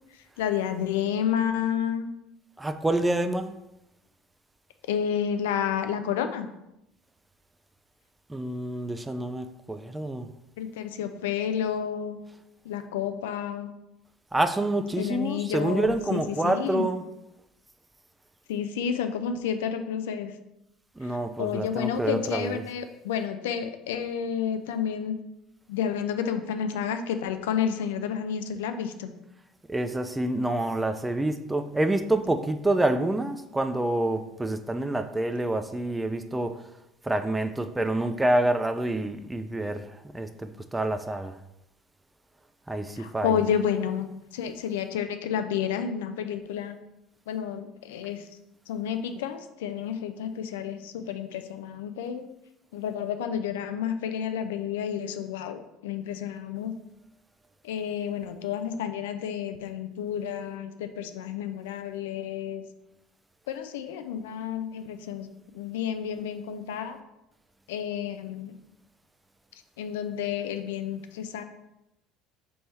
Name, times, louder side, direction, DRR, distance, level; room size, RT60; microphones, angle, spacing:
voice 1, 0.4-2.1 4.9-6.5 10.6-12.2 12.6-13.7 15.0-16.9 18.5-20.3 21.0-25.2 25.7-29.1 43.0-46.8 47.3-48.3 48.7-52.2 52.7-56.7 57.6-62.6 63.5-65.3 65.5-67.0 67.7-68.5 69.8-71.4, left 8 dB, 75° left, 0.3 m, -30 dB
voice 2, 2.6-3.5 8.3-10.3 14.3-17.1 21.0-22.6 29.7-36.6 37.0-39.8 40.1-41.4 42.7-43.4, right 1 dB, 10° right, 0.3 m, -27 dB
3.3 x 3.2 x 4.1 m
hypercardioid pair, 65°, 0 cm